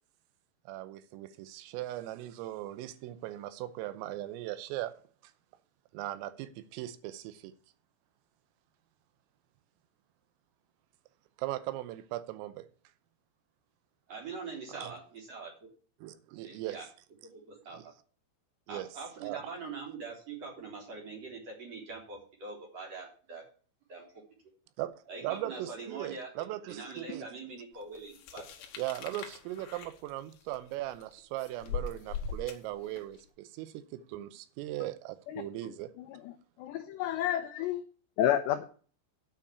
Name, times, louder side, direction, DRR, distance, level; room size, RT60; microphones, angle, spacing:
voice 1, 0.7-4.9 5.9-7.5 11.4-12.7 14.7-14.9 16.0-16.8 17.7-17.8 18.7-18.9 19.2-19.4 24.8-27.3 28.8-35.9, right 15 dB, 85° right, 3.4 m, -39 dB
voice 2, 14.1-15.7 16.4-16.9 17.2-17.9 18.7-23.4 23.9-24.1 25.1-26.3 26.7-28.5, right 4 dB, 35° right, 3.7 m, -43 dB
sound 1, 28.1-33.2, left 6 dB, 65° left, 2.5 m, -41 dB
voice 3, 36.0-36.3 36.6-37.8 38.2-38.6, left 11 dB, 85° left, 2.4 m, -30 dB
9.2 x 5.8 x 8.2 m
omnidirectional pair, 5.9 m